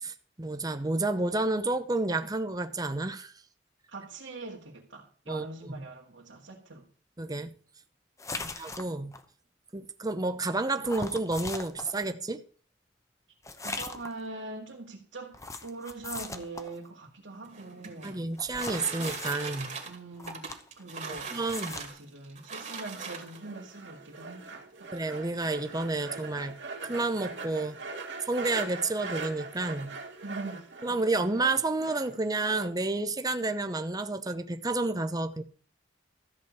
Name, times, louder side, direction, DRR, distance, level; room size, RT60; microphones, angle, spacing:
voice 1, 0.0-3.3 5.3-5.8 7.2-7.5 8.6-9.1 9.7-12.4 18.0-19.7 21.3-21.7 24.9-27.8 28.2-30.0 30.8-35.4, right 2 dB, 20° right, 0.8 m, -30 dB
voice 2, 3.9-6.9 8.3-8.6 13.6-18.3 19.8-24.9 30.2-31.0, right 2 dB, 90° right, 2.1 m, -43 dB
sound 1, 8.2-9.2 10.9-12.0 13.4-14.2 15.3-16.8 18.4-19.4 20.2-20.8 21.1-21.9, left 3 dB, 15° left, 1.0 m, -39 dB
sound 2, 17.3-23.6 24.4-24.5 24.9-25.0 25.3-25.7, right 5 dB, 40° right, 2.3 m, -40 dB
sound 3, 22.8-32.7, right 3 dB, 70° right, 2.5 m, -42 dB
14.0 x 5.1 x 8.1 m
head